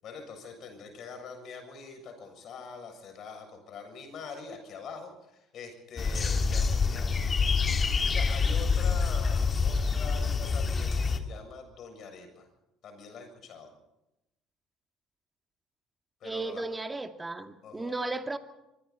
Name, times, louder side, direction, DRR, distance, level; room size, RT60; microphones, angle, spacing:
voice 1, 0.0-7.5 8.0-12.5 12.8-13.7 16.2-16.6 17.6-18.0, left 5 dB, 55° left, 5 dB, 7.4 m, -44 dB
sound 1, 6.0-11.2, left 5 dB, 35° left, 2.1 m, -26 dB
voice 2, 16.2-18.4, right 2 dB, 15° right, 7 dB, 2.3 m, -35 dB
25.0 x 24.0 x 4.3 m, 0.90 s
hypercardioid pair, 60°, 0 cm